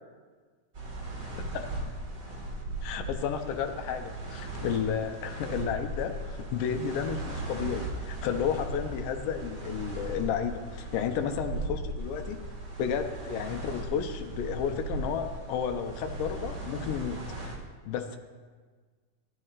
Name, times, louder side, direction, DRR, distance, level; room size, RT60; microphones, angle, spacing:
sound 1, 0.7-17.6, right 2 dB, 35° right, 1.7 m, -38 dB
voice 1, 2.8-12.4 12.8-17.5 17.9-18.2, left 7 dB, 90° left, 6 dB, 2.3 m, -32 dB
14.0 x 11.0 x 2.4 m, 1.5 s
omnidirectional pair, 3.6 m